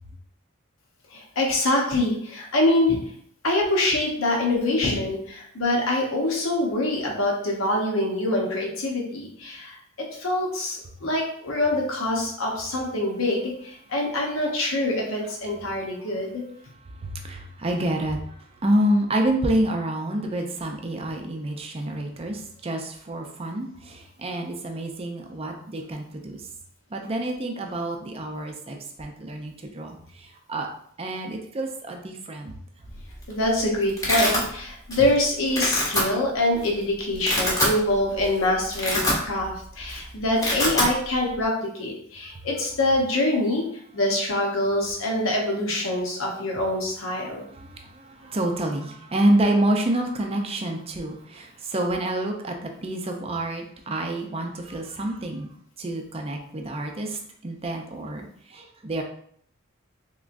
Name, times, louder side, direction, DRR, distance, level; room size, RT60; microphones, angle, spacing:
voice 1, 1.1-3.0 3.4-16.4 33.3-43.6 43.9-47.4, left 1 dB, 75° left, -1 dB, 0.9 m, -25 dB
voice 2, 17.0-18.3 18.6-26.4 26.9-30.7 31.0-32.5 47.5-55.5 55.8-59.0, right 1 dB, 30° right, 3 dB, 0.5 m, -28 dB
Domestic sounds home sounds, 33.0-33.3 33.6-34.4 34.9-35.2 35.5-36.0 36.6-36.7 37.1-37.8 38.2-38.3 38.6-39.6 39.8-40.0 40.2-40.9, left 1 dB, 15° left, 0.9 m, -24 dB
3.5 x 3.0 x 2.5 m, 0.63 s
head